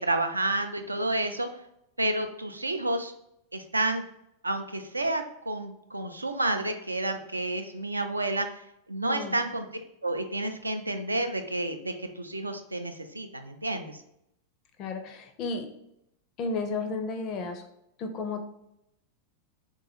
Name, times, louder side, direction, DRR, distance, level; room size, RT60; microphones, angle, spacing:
voice 1, 0.0-1.5 2.0-3.1 3.5-4.0 4.4-8.5 8.9-9.7 10.0-14.0, right 2 dB, 80° right, 6 dB, 0.3 m, -30 dB
voice 2, 9.1-9.4 14.8-15.7 16.4-17.6 18.0-18.4, left 3 dB, 35° left, 5 dB, 0.4 m, -33 dB
3.4 x 2.2 x 2.9 m, 0.79 s
figure-of-eight pair, 90°, 0 cm